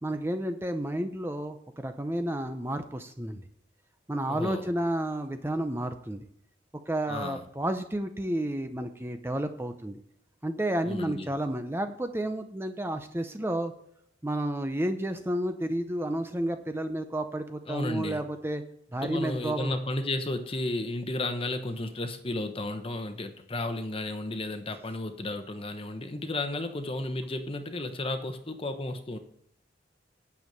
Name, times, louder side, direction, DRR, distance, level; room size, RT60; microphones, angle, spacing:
voice 1, 0.0-3.4 4.1-6.3 6.9-10.0 10.4-13.7 14.2-18.6 18.9-19.7, right 1 dB, 15° right, 7 dB, 0.6 m, -31 dB
voice 2, 4.3-4.7 7.1-7.4 10.8-11.3 17.7-18.2 18.9-29.2, left 2 dB, 30° left, 8 dB, 1.0 m, -33 dB
9.2 x 7.2 x 6.7 m, 0.70 s
head